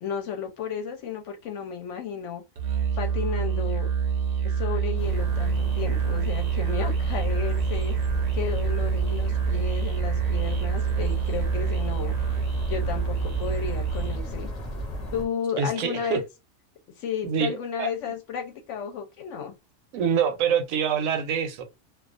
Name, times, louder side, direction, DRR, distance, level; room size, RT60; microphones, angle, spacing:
voice 1, 0.0-2.4 3.0-3.9 4.4-8.0 8.3-12.1 12.7-14.5 15.1-16.2 17.0-19.5, left 7 dB, 70° left, 0.8 m, -33 dB
Musical instrument, 2.6-14.3, right 7 dB, 55° right, 0.7 m, -26 dB
sound 1, 5.0-15.3, left 1 dB, 40° left, 0.6 m, -34 dB
voice 2, 15.6-16.2 17.2-17.9 19.9-21.6, right 7 dB, 80° right, 1.0 m, -25 dB
2.3 x 2.3 x 2.4 m
omnidirectional pair, 1.4 m